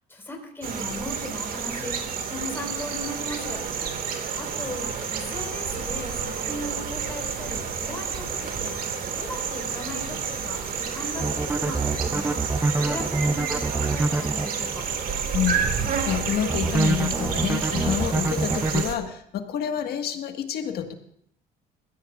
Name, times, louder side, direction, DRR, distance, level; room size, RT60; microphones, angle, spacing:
voice 1, 0.1-3.6 4.4-8.9 9.1-12.4 12.8-14.8, left 1 dB, 15° left, 0 dB, 4.5 m, -37 dB
sound 1, 0.6-19.0, right 6 dB, 60° right, 2.0 m, -30 dB
sound 2, 11.2-14.5 16.5-18.8, right 3 dB, 15° right, 0.5 m, -25 dB
voice 2, 15.3-20.9, left 9 dB, 70° left, 6 dB, 1.6 m, -28 dB
21.0 x 15.5 x 2.5 m, 0.70 s
cardioid pair, 110°, 17 cm